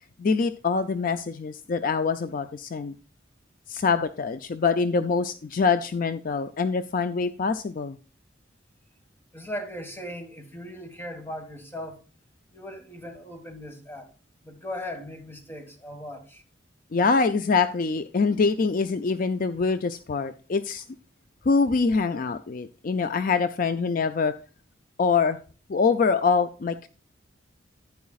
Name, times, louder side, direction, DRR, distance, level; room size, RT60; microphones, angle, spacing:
voice 1, 0.2-2.9 3.7-8.0 16.9-20.8 21.4-24.3 25.0-25.4 25.7-26.9, left 4 dB, 45° left, 0.4 m, -24 dB
voice 2, 9.3-12.0 12.5-14.1 14.4-16.4, equal, 10° left, 1.6 m, -38 dB
11.0 x 9.4 x 2.4 m
head